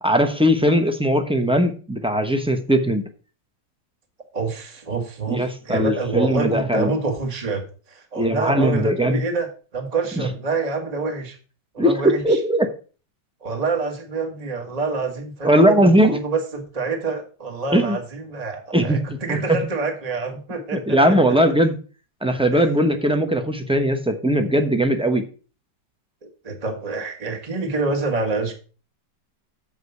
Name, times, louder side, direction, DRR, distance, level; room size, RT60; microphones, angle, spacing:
voice 1, 0.0-3.1 5.3-6.9 8.2-9.2 10.2-10.3 11.8-12.7 15.4-16.2 17.7-18.0 18.7-19.6 20.7-21.7 22.2-25.2, equal, 5° right, 6 dB, 0.5 m, -19 dB
voice 2, 4.3-11.4 11.7-12.4 13.4-21.4 22.5-22.7 26.4-28.5, right 3 dB, 25° right, 3 dB, 1.5 m, -27 dB
7.5 x 5.0 x 6.7 m, 0.37 s
omnidirectional pair, 1.9 m